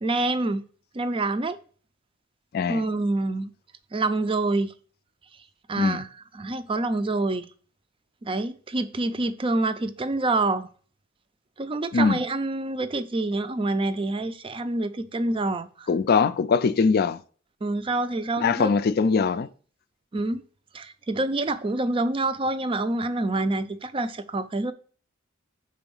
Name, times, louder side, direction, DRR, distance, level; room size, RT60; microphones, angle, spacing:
voice 1, 0.0-0.6 0.9-1.6 2.7-3.5 3.9-4.7 5.7-6.1 6.3-7.5 8.2-10.7 11.6-15.9 17.6-18.7 20.1-20.4 20.7-24.7, right 2 dB, 25° right, 0.4 m, -26 dB
voice 2, 15.9-17.2 18.4-19.5, left 5 dB, 50° left, 0.4 m, -22 dB
5.3 x 3.9 x 5.4 m
head